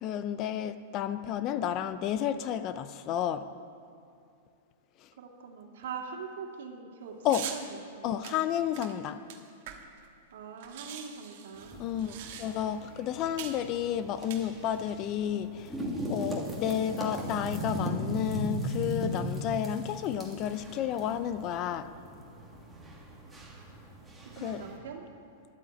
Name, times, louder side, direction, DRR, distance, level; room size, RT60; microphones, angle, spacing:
voice 1, 0.0-3.5 7.2-7.5 8.0-9.2 11.8-15.7 16.1-21.9 24.4-24.6, left 9 dB, 30° left, 13 dB, 0.5 m, -31 dB
voice 2, 5.2-8.3 10.3-11.9 24.3-25.0, right 5 dB, 70° right, 1 dB, 2.2 m, -43 dB
sound 1, 7.3-7.6 8.2-10.1 10.3-10.4 10.6-12.8 13.4-13.6 14.2-14.9, right 10 dB, 50° right, 1.4 m, -42 dB
sound 2, 11.5-24.8, equal, 5° right, 1.8 m, -38 dB
11.5 x 9.2 x 8.2 m, 2.6 s
supercardioid pair, 165°, 0 cm